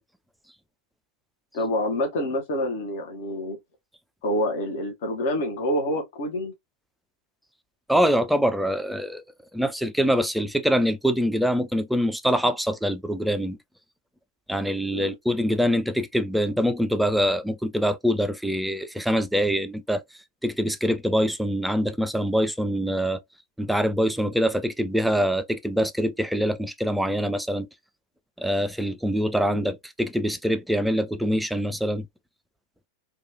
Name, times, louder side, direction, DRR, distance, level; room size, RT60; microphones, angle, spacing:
voice 1, 1.5-3.6 4.2-6.5 14.9-15.2 29.4-29.7, left 1 dB, 50° left, 0.8 m, -27 dB
voice 2, 7.9-9.2 9.5-13.6 14.5-20.0 20.4-23.2 23.6-27.7 28.4-32.1, equal, ahead, 0.3 m, -24 dB
2.9 x 2.3 x 2.5 m
figure-of-eight pair, 90°, 0 cm